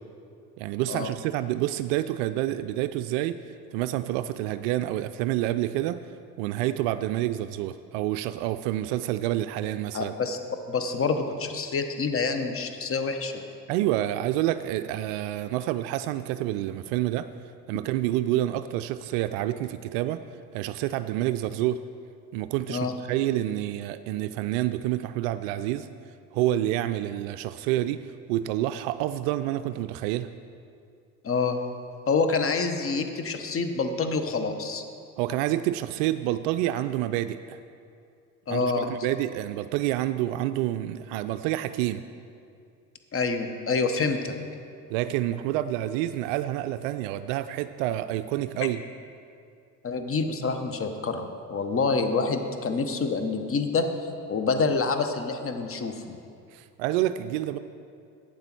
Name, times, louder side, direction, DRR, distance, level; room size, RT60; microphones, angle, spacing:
voice 1, 0.6-3.4 3.7-6.0 6.4-10.1 13.7-17.3 17.7-20.2 20.5-21.8 22.3-25.9 26.3-30.3 35.2-37.6 38.5-42.0 44.9-48.8 56.5-57.6, right 14 dB, 55° right, 11 dB, 0.5 m, -28 dB
voice 2, 9.9-10.4 10.7-13.3 22.7-22.9 31.2-31.6 32.1-34.8 38.5-38.9 43.1-44.3 49.8-53.8 54.3-56.2, left 4 dB, 25° left, 7 dB, 1.1 m, -27 dB
11.5 x 9.0 x 4.5 m, 2.4 s
hypercardioid pair, 70°, 49 cm